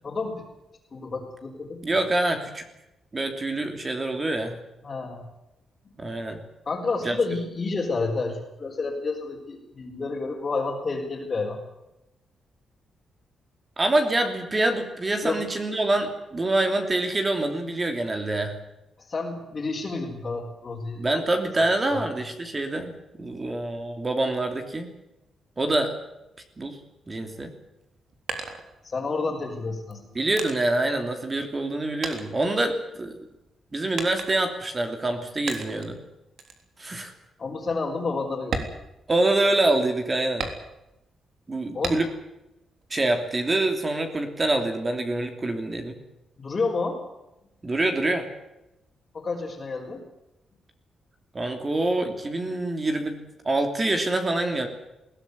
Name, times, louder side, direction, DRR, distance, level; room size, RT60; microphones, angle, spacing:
voice 1, 0.0-0.5 0.9-1.8 4.8-5.2 6.7-11.6 15.2-15.4 19.0-21.0 21.9-22.0 28.8-30.1 37.4-38.7 41.7-42.0 46.4-47.0 49.1-50.0, left 3 dB, 30° left, -4 dB, 4.2 m, -30 dB
voice 2, 1.8-2.6 3.1-4.6 6.0-6.4 7.0-7.2 13.8-18.5 21.0-24.9 25.6-25.9 26.6-26.8 27.1-27.5 30.1-33.2 33.7-36.0 36.8-37.1 39.1-40.5 41.5-42.1 42.9-46.0 47.6-48.2 51.3-54.7, right 2 dB, 20° right, 5 dB, 3.0 m, -26 dB
sound 1, 27.7-29.3 29.9-31.7 32.0-33.2 34.0-34.6 35.5-36.0 36.4-36.6 37.1-37.2 37.6-37.8 38.4-39.6 40.4-41.0 41.8-42.4 42.8-43.6, right 4 dB, 55° right, 3.5 m, -35 dB
21.5 x 17.0 x 9.5 m, 0.92 s
cardioid pair, 140°, 0 cm